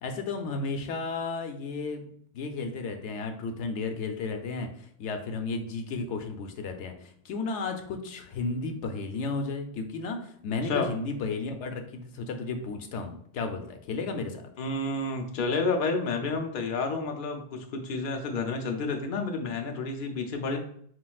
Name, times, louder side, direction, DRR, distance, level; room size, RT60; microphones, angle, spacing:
voice 1, 0.0-2.1 2.3-14.4, left 3 dB, 85° left, 5 dB, 0.9 m, -33 dB
voice 2, 14.6-20.6, left 3 dB, 55° left, 4 dB, 0.7 m, -30 dB
7.3 x 2.5 x 2.3 m, 0.63 s
omnidirectional pair, 1.2 m